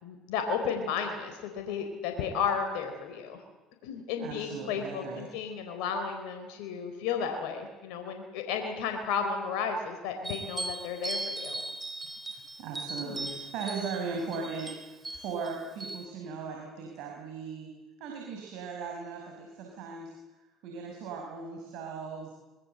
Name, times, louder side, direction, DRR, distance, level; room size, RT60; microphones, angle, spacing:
voice 1, 0.0-3.4 3.8-11.6 13.0-13.1, left 6 dB, 75° left, 5 dB, 4.1 m, -33 dB
voice 2, 4.2-5.4 12.6-17.7 18.0-20.1 20.6-22.3, right 5 dB, 70° right, 1 dB, 5.8 m, -38 dB
sound 1, 10.2-16.0, right 2 dB, 15° right, 5.4 m, -38 dB
25.5 x 22.5 x 8.0 m, 1.2 s
supercardioid pair, 80°, 0 cm